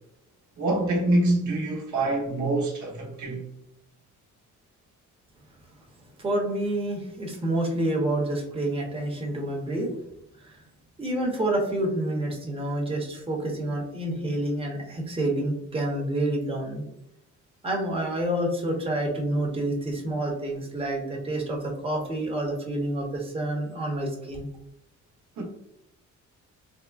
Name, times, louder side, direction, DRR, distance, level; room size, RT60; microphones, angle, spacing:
voice 1, 0.6-3.4 25.4-25.5, right 2 dB, 75° right, 0.9 m, -25 dB
voice 2, 6.2-9.9 10.4-10.6 11.0-16.8 17.6-24.5, right 1 dB, 20° right, 0.8 m, -28 dB
3.6 x 2.1 x 2.3 m
cardioid pair, 90°, 30 cm